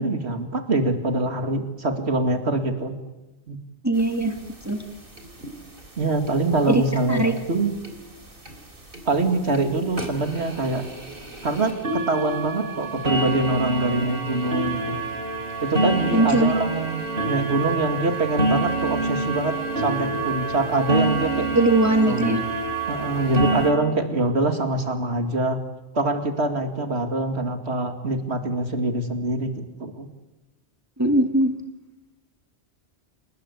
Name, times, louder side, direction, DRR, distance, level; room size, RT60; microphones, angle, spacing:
voice 1, 0.0-3.0 3.5-3.6 6.0-7.2 7.5-7.7 9.1-10.9 11.4-15.0 15.6-21.5 22.0-22.3 22.9-25.6 25.9-30.1, right 2 dB, 75° right, 6 dB, 2.8 m, -24 dB
voice 2, 3.8-4.3 4.7-4.8 6.7-6.8 7.1-7.3 16.1-16.5 21.5-22.4 31.0-31.5, right 1 dB, 15° right, 5 dB, 1.9 m, -20 dB
sound 1, 4.0-4.1 4.4-4.5 4.6-4.8 5.2-5.5 6.3-6.4 6.9-7.0 7.4-7.5 7.8-7.9 8.5-8.6 8.9-9.1 9.5-9.6 9.9-23.7, right 2 dB, 55° right, 3.6 m, -27 dB
29.0 x 20.0 x 8.5 m, 1.0 s
omnidirectional pair, 1.1 m